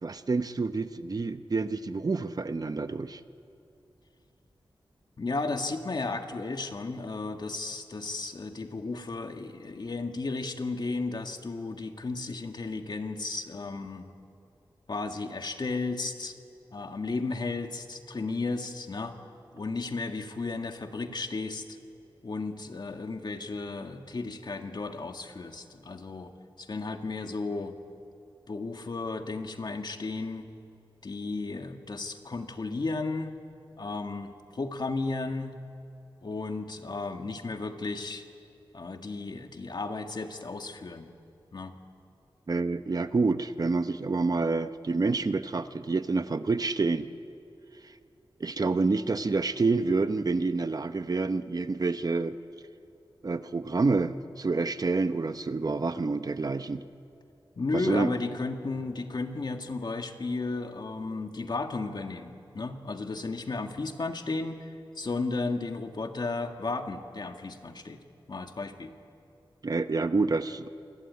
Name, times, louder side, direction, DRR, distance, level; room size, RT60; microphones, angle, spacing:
voice 1, 0.0-3.2 42.5-47.1 48.4-52.4 53.2-56.8 57.7-58.1 69.6-70.7, right 3 dB, 45° right, 10 dB, 0.9 m, -28 dB
voice 2, 5.2-14.1 14.9-16.3 16.7-19.1 19.5-21.6 22.2-26.3 26.6-27.7 28.5-30.5 31.0-33.3 33.8-35.5 36.2-38.2 38.7-41.1 41.5-41.8 57.6-68.0 68.3-69.0, left 3 dB, 55° left, 5 dB, 1.9 m, -34 dB
28.0 x 20.5 x 9.6 m, 2.6 s
wide cardioid pair, 105°, 9 cm